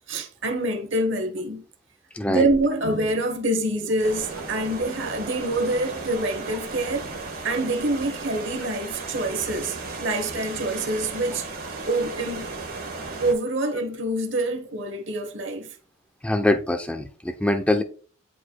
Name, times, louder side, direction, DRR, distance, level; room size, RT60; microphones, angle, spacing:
voice 1, 0.1-1.6 2.3-7.1 7.4-11.5 11.9-12.5 13.2-15.7, right 1 dB, 60° right, 1.1 m, -26 dB
voice 2, 2.1-2.5 16.2-17.8, left 1 dB, 5° left, 0.5 m, -23 dB
sound 1, 4.0-13.3, right 3 dB, 45° right, 1.4 m, -35 dB
10.0 x 4.7 x 2.2 m
head